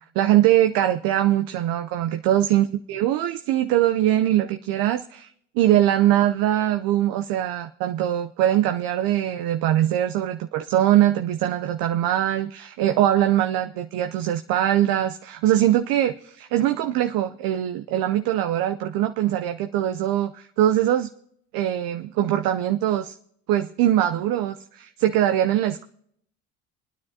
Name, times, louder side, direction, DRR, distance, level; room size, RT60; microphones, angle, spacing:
voice 1, 0.2-5.3 5.6-21.1 21.5-23.1 23.5-25.8, right 12 dB, 65° right, 0.7 m, -22 dB
22.5 x 9.7 x 2.8 m
hypercardioid pair, 70°, 38 cm